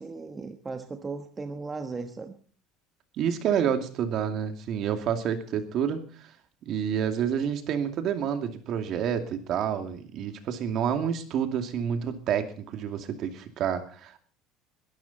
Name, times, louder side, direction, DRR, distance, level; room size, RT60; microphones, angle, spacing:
voice 1, 0.0-2.3, right 4 dB, 15° right, 7 dB, 1.2 m, -37 dB
voice 2, 3.2-6.3 6.7-14.2, right 8 dB, 45° right, 8 dB, 2.4 m, -29 dB
22.0 x 13.0 x 4.2 m, 0.42 s
cardioid pair, 150°, 0 cm